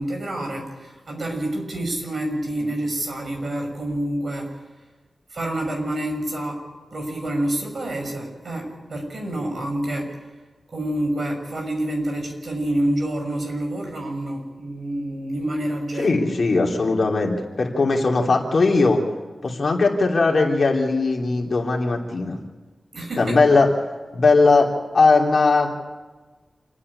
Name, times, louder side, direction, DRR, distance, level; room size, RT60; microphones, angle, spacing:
voice 1, 0.0-4.6 5.3-6.6 6.9-10.2 10.7-16.2 22.9-23.4, right 1 dB, 60° right, 2 dB, 6.2 m, -27 dB
voice 2, 16.0-19.0 19.4-22.4 23.2-23.7 24.1-25.7, left 3 dB, 60° left, 0 dB, 3.3 m, -19 dB
28.0 x 9.7 x 9.9 m, 1.3 s
wide cardioid pair, 100°, 0 cm